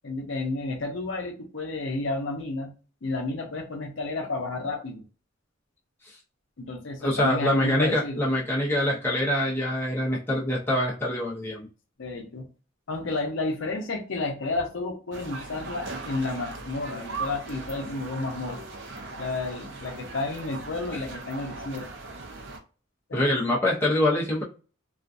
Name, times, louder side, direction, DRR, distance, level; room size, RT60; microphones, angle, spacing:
voice 1, 0.0-2.7 3.0-5.0 6.6-8.2 12.0-12.4 12.9-18.6 19.2-21.9 23.1-23.3, left 2 dB, 70° left, 0.6 m, -31 dB
voice 2, 7.0-11.7 20.9-21.0 23.1-24.4, left 1 dB, 10° left, 0.6 m, -25 dB
sound 1, 15.1-22.6, right 3 dB, 60° right, 0.5 m, -39 dB
2.4 x 2.2 x 2.5 m
head